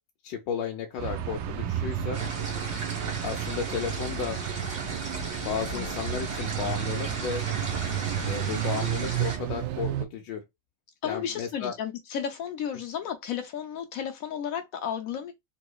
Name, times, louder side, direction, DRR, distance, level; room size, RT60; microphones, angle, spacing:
voice 1, 0.2-2.2 3.2-4.4 5.4-7.4 8.2-10.4 11.0-11.7, left 7 dB, 90° left, 1.3 m, -33 dB
sound 1, 1.0-10.1, right 10 dB, 80° right, 1.2 m, -32 dB
sound 2, 2.1-9.4, right 2 dB, 50° right, 1.7 m, -37 dB
voice 2, 11.0-15.3, left 8 dB, 70° left, 0.8 m, -33 dB
4.0 x 2.8 x 2.2 m
omnidirectional pair, 1.9 m